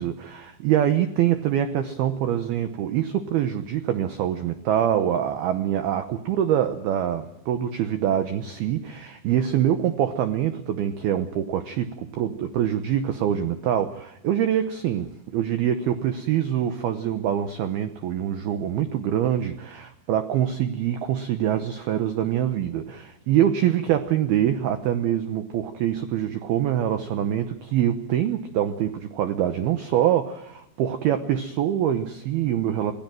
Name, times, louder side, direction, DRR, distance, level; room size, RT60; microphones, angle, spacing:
voice 1, 0.0-32.9, right 10 dB, 85° right, 8 dB, 2.2 m, -24 dB
26.0 x 17.0 x 7.6 m, 0.78 s
omnidirectional pair, 5.9 m